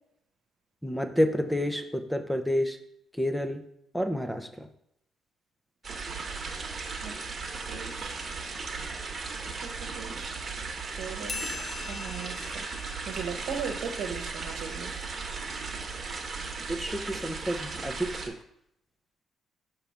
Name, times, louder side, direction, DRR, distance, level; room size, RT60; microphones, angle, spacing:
voice 1, 0.8-2.8 3.1-3.6 3.9-4.7 16.7-18.4, equal, 5° left, 8 dB, 0.7 m, -29 dB
sound 1, 5.8-18.3, right 4 dB, 40° right, 1.2 m, -36 dB
voice 2, 7.7-8.2 9.6-10.3 11.0-11.5 11.9-12.6 13.1-14.9, right 6 dB, 80° right, 5 dB, 0.9 m, -38 dB
sound 2, 11.3-14.3, left 5 dB, 40° left, 0.8 m, -42 dB
6.0 x 3.4 x 5.6 m, 0.76 s
cardioid pair, 90°, 0 cm